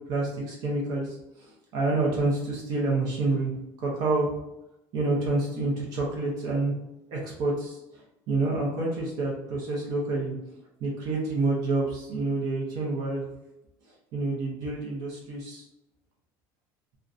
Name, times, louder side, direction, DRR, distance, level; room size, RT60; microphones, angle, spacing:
voice 1, 0.1-1.2 1.7-4.3 4.9-6.7 7.1-7.8 8.3-10.3 10.8-13.3 14.1-15.6, right 2 dB, 50° right, -3 dB, 0.6 m, -28 dB
2.5 x 2.1 x 2.5 m, 0.92 s
cardioid pair, 155°, 8 cm